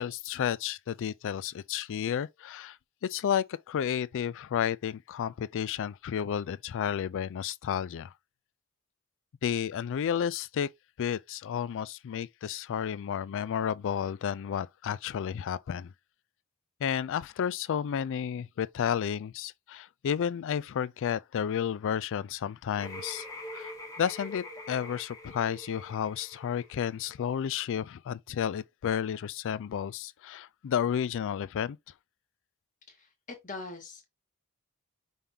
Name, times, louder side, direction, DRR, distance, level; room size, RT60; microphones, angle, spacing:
voice 1, 0.0-2.8 3.0-8.1 9.4-10.7 11.0-15.9 16.8-23.3 23.5-31.8, left 8 dB, 60° left, 0.3 m, -32 dB
sound 1, 22.8-27.5, left 1 dB, 15° left, 1.3 m, -44 dB
voice 2, 32.9-34.0, left 3 dB, 35° left, 1.6 m, -43 dB
5.5 x 3.4 x 2.8 m
head